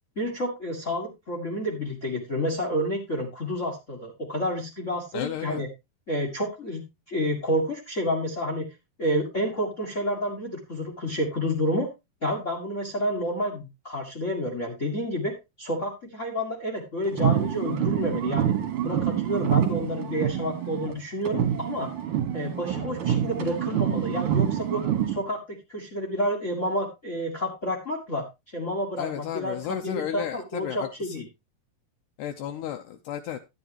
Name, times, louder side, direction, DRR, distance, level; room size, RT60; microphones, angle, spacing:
voice 1, 0.1-5.7 6.1-8.7 9.0-11.9 12.2-18.5 18.8-21.9 22.3-24.8 25.1-28.2 28.5-29.5 29.8-31.2, equal, 35° left, 3 dB, 1.2 m, -29 dB
voice 2, 5.1-5.6 29.0-31.2 32.2-33.4, left 10 dB, 80° left, 6 dB, 2.1 m, -33 dB
sound 1, 17.1-21.0 21.2-25.2, right 10 dB, 55° right, 1.8 m, -26 dB
12.0 x 9.2 x 2.9 m, 0.23 s
omnidirectional pair, 4.0 m